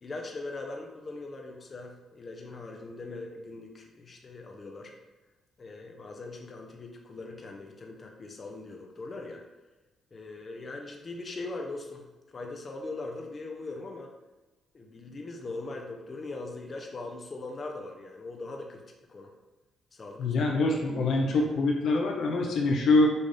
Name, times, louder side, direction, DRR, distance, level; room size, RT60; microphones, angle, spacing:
voice 1, 0.0-4.9 5.6-9.4 10.1-12.0 12.3-14.1 14.7-18.8 19.1-19.3 19.9-20.4, left 2 dB, 40° left, 2 dB, 0.7 m, -40 dB
voice 2, 20.2-23.1, left 2 dB, 70° left, 1 dB, 0.7 m, -24 dB
5.4 x 2.5 x 3.4 m, 1.1 s
cardioid pair, 80°, 0 cm